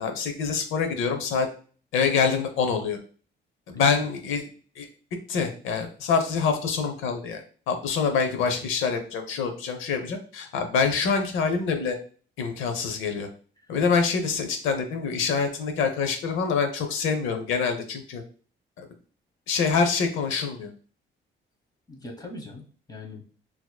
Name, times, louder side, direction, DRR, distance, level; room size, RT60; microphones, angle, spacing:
voice 1, 0.0-1.5 1.9-3.0 3.7-4.5 4.8-4.9 5.3-12.0 12.4-13.3 13.7-18.2 18.8-18.9 19.5-20.7, left 5 dB, 90° left, 6 dB, 0.7 m, -25 dB
voice 2, 8.3-8.6 21.9-23.2, left 2 dB, 20° left, 1 dB, 1.1 m, -41 dB
4.1 x 2.9 x 2.3 m, 0.41 s
cardioid pair, 90°, 20 cm